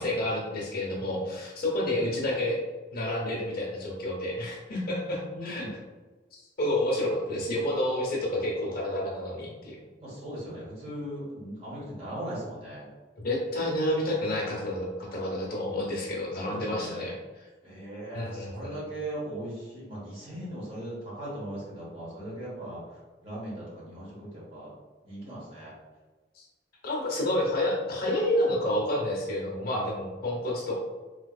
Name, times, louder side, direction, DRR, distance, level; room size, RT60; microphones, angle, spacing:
voice 1, 0.0-2.6 2.9-5.6 6.3-9.8 13.2-17.1 18.1-18.8 26.3-26.4 26.8-30.8, left 1 dB, 55° left, -2 dB, 0.8 m, -29 dB
voice 2, 5.2-5.7 10.0-12.9 16.5-17.1 17.6-24.7 25.0-25.7, right 1 dB, 35° right, -7 dB, 1.4 m, -39 dB
3.3 x 3.1 x 2.3 m, 1.3 s
head